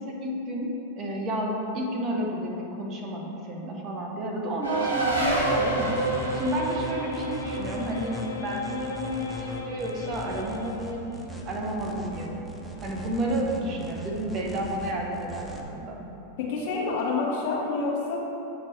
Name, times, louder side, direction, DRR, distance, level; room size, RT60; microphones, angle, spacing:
voice 1, 0.0-6.0 6.3-11.1 11.5-16.0, right 1 dB, 35° right, -1 dB, 0.9 m, -31 dB
Race car auto racing, 4.6-9.6, right 2 dB, 90° right, 1.0 m, -29 dB
sound 1, 5.0-15.6, right 1 dB, 5° right, 0.7 m, -40 dB
sound 2, 5.4-11.2, left 4 dB, 85° left, 0.6 m, -38 dB
voice 2, 16.4-18.2, left 3 dB, 60° left, -3 dB, 1.4 m, -28 dB
7.6 x 3.1 x 4.5 m, 2.9 s
hypercardioid pair, 100°, 0 cm